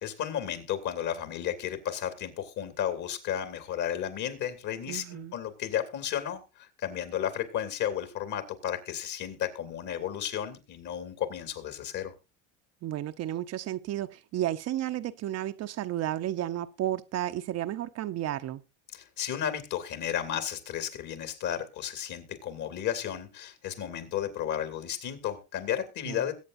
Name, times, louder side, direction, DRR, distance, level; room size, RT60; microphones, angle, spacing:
voice 1, 0.0-12.1 18.9-26.3, left 10 dB, 50° left, 2.9 m, -33 dB
voice 2, 4.9-5.3 12.8-18.6 26.1-26.2, right 13 dB, 45° right, 0.8 m, -32 dB
22.0 x 8.5 x 2.6 m
supercardioid pair, 100°, 37 cm